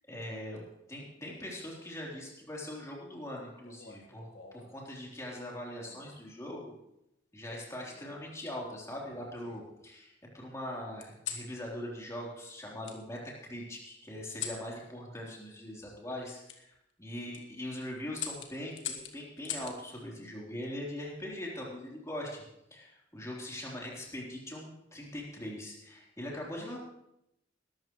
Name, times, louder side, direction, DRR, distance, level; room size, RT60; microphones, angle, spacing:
voice 1, 0.1-6.8 7.3-13.2 13.5-16.7 17.0-22.4 22.7-26.8, left 1 dB, 15° left, -3 dB, 3.7 m, -41 dB
sound 1, 3.6-4.8 5.8-6.2 7.5-8.2 8.9-9.8 11.0-11.5 12.8-13.0 14.3-14.7 16.4-16.6 17.1-17.4 18.1-19.8 21.3-21.7, left 8 dB, 90° left, 1.7 m, -43 dB
20.5 x 13.0 x 3.2 m, 0.82 s
head